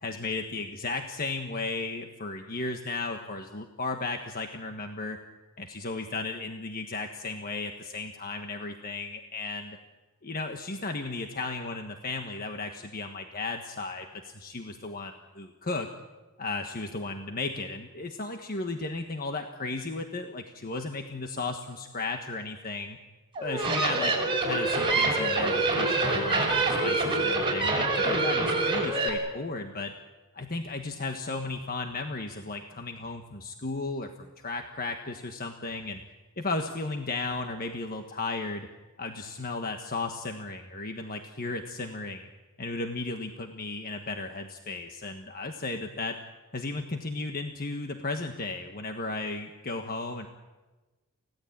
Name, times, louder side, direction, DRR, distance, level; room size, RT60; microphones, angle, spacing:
voice 1, 0.0-5.2 5.6-9.8 10.2-15.9 16.4-23.0 23.4-24.1 24.4-29.9 30.3-36.0 36.4-38.7 39.0-42.3 42.6-46.2 46.5-50.3, left 3 dB, 45° left, 5 dB, 1.4 m, -35 dB
sound 1, 23.3-29.1, right 3 dB, 25° right, 6.0 m, -26 dB
29.5 x 16.5 x 8.8 m, 1.2 s
head